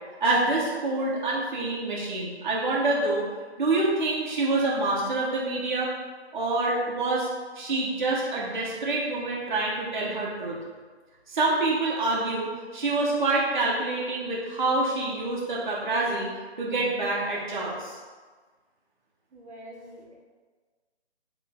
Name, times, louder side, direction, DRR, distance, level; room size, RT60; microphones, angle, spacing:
voice 1, 0.2-3.2 3.6-5.9 6.3-7.3 7.5-10.6 11.3-16.3 16.6-18.0, right 2 dB, 45° right, -5 dB, 0.9 m, -26 dB
voice 2, 19.3-20.2, equal, 85° right, -1 dB, 1.1 m, -45 dB
4.2 x 3.2 x 3.5 m, 1.4 s
hypercardioid pair, 170°, 34 cm